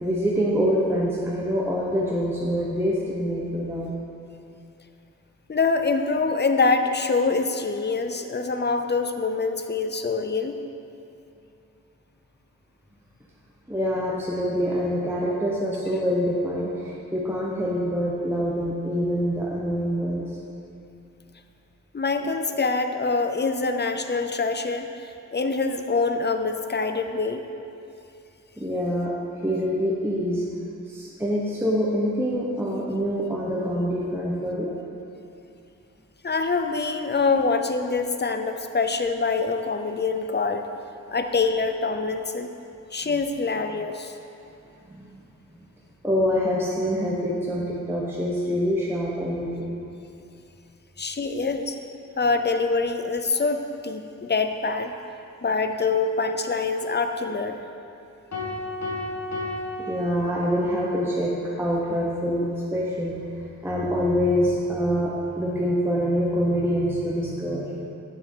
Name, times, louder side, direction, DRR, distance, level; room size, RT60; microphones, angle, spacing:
voice 1, 0.0-3.9 13.7-20.2 28.6-29.1 29.4-30.4 30.9-34.8 43.1-43.2 44.9-45.2 46.0-49.7 59.8-67.9, equal, 5° right, -5 dB, 0.8 m, -25 dB
voice 2, 5.5-10.6 21.9-27.4 36.2-40.7 41.1-42.5 42.9-44.1 51.0-51.8 52.2-54.9 55.4-57.6, left 4 dB, 35° left, 7 dB, 0.5 m, -25 dB
sound 1, 58.3-60.8, left 1 dB, 60° left, 1.3 m, -33 dB
7.3 x 6.8 x 3.7 m, 2.7 s
wide cardioid pair, 60°, 32 cm